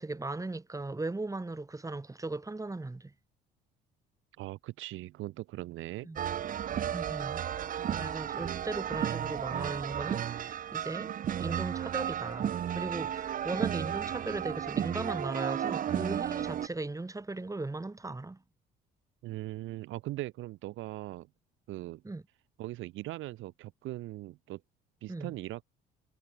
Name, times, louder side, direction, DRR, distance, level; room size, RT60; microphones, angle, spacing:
voice 1, 0.0-3.1 6.0-6.2 6.9-7.4 7.9-11.1 11.4-18.4 22.0-22.2 25.1-25.3, right 2 dB, 15° right, 2.3 m, -38 dB
voice 2, 4.4-6.1 19.2-21.3 21.7-22.0 22.6-24.6 25.0-25.6, right 17 dB, 70° right, 1.3 m, -40 dB
sound 1, 6.2-16.7, right 10 dB, 40° right, 0.6 m, -33 dB
hypercardioid pair, 60°, 21 cm